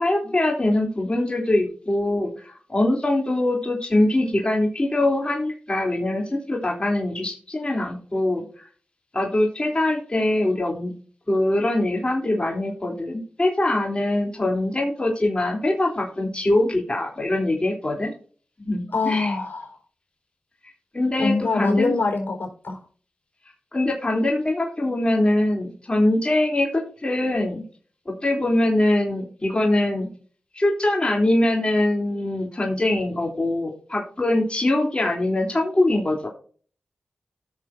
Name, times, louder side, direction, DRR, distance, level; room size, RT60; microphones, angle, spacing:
voice 1, 0.0-8.7 9.1-10.9 11.3-18.1 18.6-19.3 20.9-21.9 23.7-27.6 28.0-30.1 30.5-36.3, left 1 dB, 30° left, 0 dB, 3.2 m, -23 dB
voice 2, 18.9-19.7 21.2-22.8, left 3 dB, 70° left, 1 dB, 4.1 m, -24 dB
15.0 x 6.8 x 2.7 m, 0.43 s
cardioid pair, 40°, 3 cm